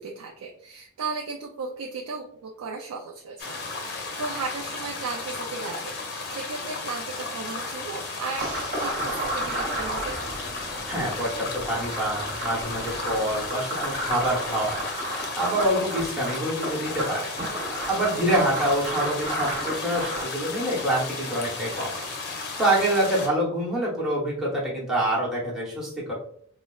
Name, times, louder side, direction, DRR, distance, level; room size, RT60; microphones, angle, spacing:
voice 1, 0.0-8.5 8.8-10.2 18.3-18.7, right 4 dB, 70° right, 1 dB, 0.4 m, -35 dB
sound 1, 3.4-23.3, left 3 dB, 45° left, 0.5 m, -34 dB
sound 2, 8.4-20.2, right 1 dB, 45° right, 0.9 m, -32 dB
voice 2, 10.9-14.8 15.4-17.3 17.9-22.1 22.6-26.1, right 1 dB, ahead, -6 dB, 0.8 m, -26 dB
4.0 x 2.0 x 2.3 m, 0.65 s
head